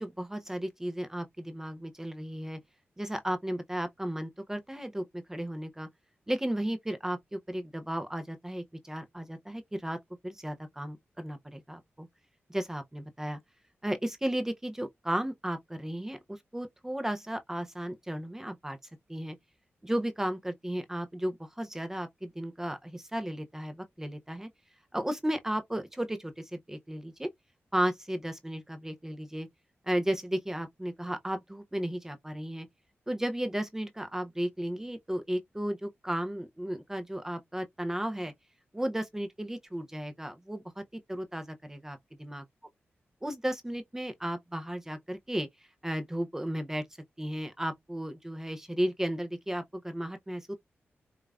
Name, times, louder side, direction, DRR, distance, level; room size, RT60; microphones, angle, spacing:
voice 1, 0.0-2.6 3.0-5.9 6.3-10.0 10.2-12.1 12.5-13.4 13.8-18.8 19.1-19.4 19.8-24.5 24.9-27.3 27.7-29.5 29.9-32.7 33.1-38.3 38.7-42.0 42.3-42.4 43.2-45.5 45.8-46.8 47.2-50.5, right 1 dB, 10° right, 0.5 m, -34 dB
5.1 x 2.4 x 2.3 m
wide cardioid pair, 135°, 4 cm